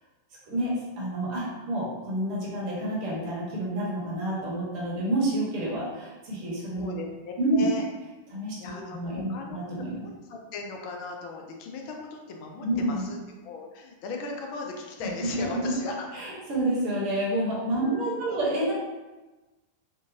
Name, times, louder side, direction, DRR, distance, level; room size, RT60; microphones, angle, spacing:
voice 1, 0.5-6.9 7.4-7.7 8.3-10.0 12.6-13.0 15.0-15.8 16.1-18.7, right 1 dB, 45° right, -5 dB, 1.2 m, -29 dB
voice 2, 6.8-7.8 8.6-16.1 17.8-18.4, left 3 dB, 45° left, 1 dB, 0.5 m, -38 dB
3.6 x 2.4 x 2.6 m, 1.2 s
figure-of-eight pair, 90°, 0 cm